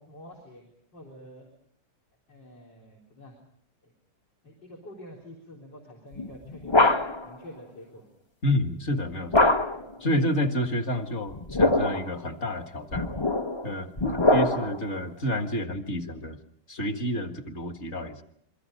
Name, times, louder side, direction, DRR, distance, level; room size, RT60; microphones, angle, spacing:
voice 1, 0.0-1.5 2.3-3.4 3.8-3.9 4.4-6.9 7.2-8.1 10.0-10.1 14.0-14.5, left 1 dB, 90° left, -2 dB, 4.6 m, -48 dB
sound 1, 6.2-7.3 9.3-9.9 11.3-12.1 12.9-14.9, left 2 dB, 25° left, 0.7 m, -23 dB
voice 2, 8.4-9.5 10.0-13.1 13.6-13.9 14.3-16.4 16.7-18.2, left 1 dB, 40° left, 6 dB, 1.9 m, -29 dB
28.0 x 23.5 x 5.3 m, 0.70 s
omnidirectional pair, 1.9 m